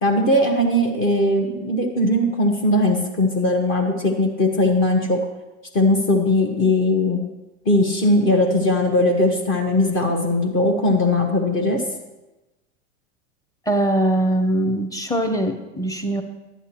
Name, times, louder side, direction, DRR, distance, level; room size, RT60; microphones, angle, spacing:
voice 1, 0.0-5.2 5.7-7.2 7.6-11.8, left 1 dB, 30° left, 1 dB, 1.1 m, -19 dB
voice 2, 13.7-16.2, right 1 dB, 10° left, 6 dB, 0.9 m, -21 dB
11.0 x 8.1 x 2.9 m, 1.1 s
hypercardioid pair, 95°, 38 cm